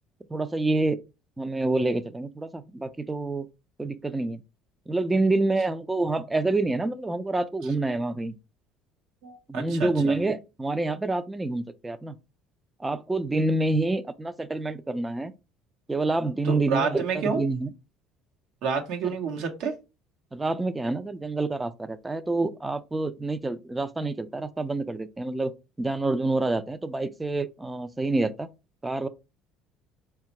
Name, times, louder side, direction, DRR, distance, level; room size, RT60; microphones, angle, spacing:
voice 1, 0.3-1.0 1.4-3.5 3.8-4.4 4.9-8.4 9.5-12.2 12.8-15.3 15.9-17.7 19.0-19.2 20.3-25.5 25.8-28.5 28.8-29.1, right 2 dB, 15° right, 0.4 m, -27 dB
voice 2, 9.2-9.9 16.4-17.4 18.6-19.7, right 5 dB, 70° right, 0.9 m, -28 dB
4.3 x 2.3 x 2.9 m
supercardioid pair, 85°, 0 cm